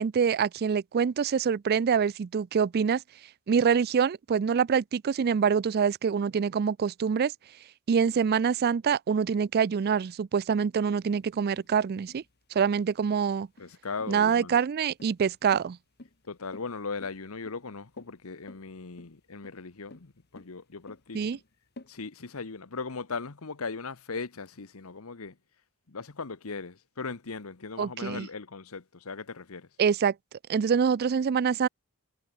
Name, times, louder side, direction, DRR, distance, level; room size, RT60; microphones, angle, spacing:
voice 1, 0.0-3.0 3.5-7.3 7.9-12.2 12.5-13.5 14.1-15.8 21.1-21.4 27.8-28.3 29.8-30.1 30.5-31.7, right 6 dB, 45° right, 0.4 m, -25 dB
sound 1, 11.1-21.9, left 2 dB, 45° left, 1.6 m, -52 dB
voice 2, 13.6-14.6 16.3-21.3 21.9-25.4 25.9-29.7, left 4 dB, 70° left, 1.1 m, -38 dB
head